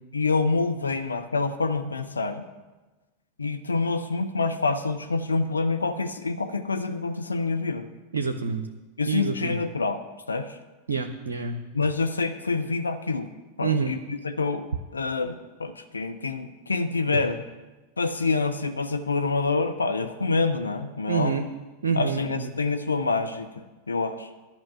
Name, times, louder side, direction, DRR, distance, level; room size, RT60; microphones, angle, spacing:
voice 1, 0.1-2.4 3.4-7.9 9.0-10.0 10.3-10.6 11.7-13.3 13.6-17.4 18.0-21.5 21.9-24.3, left 3 dB, 75° left, 8 dB, 0.6 m, -27 dB
voice 2, 8.1-8.7 9.1-9.6 10.9-11.6 13.6-14.0 21.1-21.5 21.8-22.5, right 5 dB, 70° right, 7 dB, 0.6 m, -27 dB
11.0 x 5.8 x 8.9 m, 1.2 s
figure-of-eight pair, 90°, 0 cm